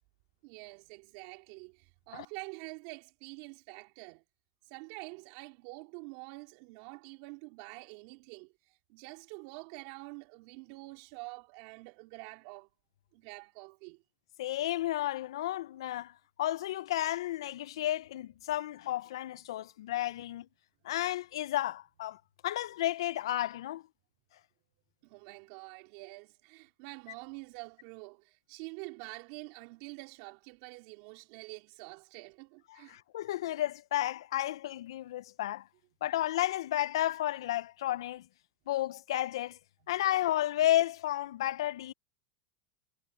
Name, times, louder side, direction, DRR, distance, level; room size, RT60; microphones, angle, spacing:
voice 1, 0.4-4.2 4.6-12.7 13.1-14.0 25.0-33.0, right 29 dB, 60° right, 3.7 m, -47 dB
voice 2, 14.4-16.1 16.4-20.5 20.8-23.8 32.9-35.6 36.0-38.3 38.7-39.6 39.9-41.9, left 14 dB, 80° left, 0.5 m, -32 dB
supercardioid pair, 115°, 3 cm